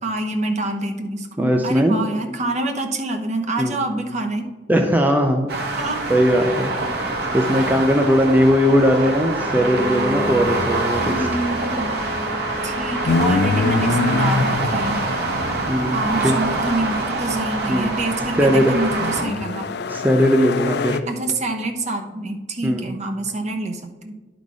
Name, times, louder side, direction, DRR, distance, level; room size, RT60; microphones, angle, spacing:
voice 1, 0.0-4.5 5.7-6.0 11.0-12.0 12.6-15.0 15.9-19.8 21.1-24.1, right 2 dB, 40° right, 4 dB, 0.9 m, -26 dB
voice 2, 1.4-2.0 3.6-3.7 4.7-5.5 6.1-6.7 7.3-11.3 15.7-16.3 17.7-18.0 18.4-18.7 19.9-21.0 22.6-22.8, equal, 10° right, 3 dB, 0.5 m, -18 dB
sound 1, 5.5-19.2, right 2 dB, 65° right, 1.4 m, -25 dB
Bowed string instrument, 9.3-14.0, left 1 dB, 20° left, 2.5 m, -32 dB
sound 2, 13.1-16.6 17.7-21.0, left 4 dB, 65° left, 0.4 m, -25 dB
10.5 x 4.0 x 4.8 m, 1.4 s
head